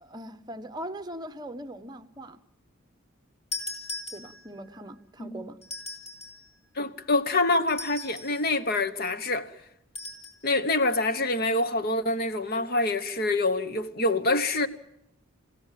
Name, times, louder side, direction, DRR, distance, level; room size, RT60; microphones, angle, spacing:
voice 1, 0.0-2.4 4.1-5.6, right 1 dB, 20° right, 0.9 m, -40 dB
sound 1, 3.5-4.7 5.6-6.5 7.7-8.4 9.9-10.4, left 2 dB, 30° left, 4.2 m, -38 dB
voice 2, 6.8-9.5 10.4-14.7, left 2 dB, 50° left, 1.1 m, -26 dB
29.0 x 16.5 x 7.5 m
head